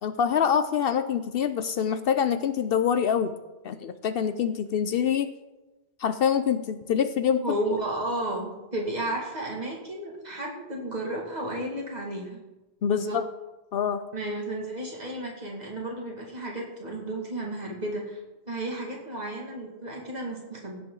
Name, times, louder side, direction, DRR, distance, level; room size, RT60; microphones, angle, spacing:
voice 1, 0.0-3.3 3.6-5.3 6.0-7.4 12.8-13.3 13.7-14.0, left 8 dB, 65° left, 11 dB, 0.7 m, -25 dB
voice 2, 7.4-12.4 12.9-13.2 14.1-18.2 18.5-20.8, right 1 dB, 40° right, -2 dB, 2.3 m, -33 dB
16.0 x 7.7 x 3.9 m, 1.1 s
omnidirectional pair, 1.1 m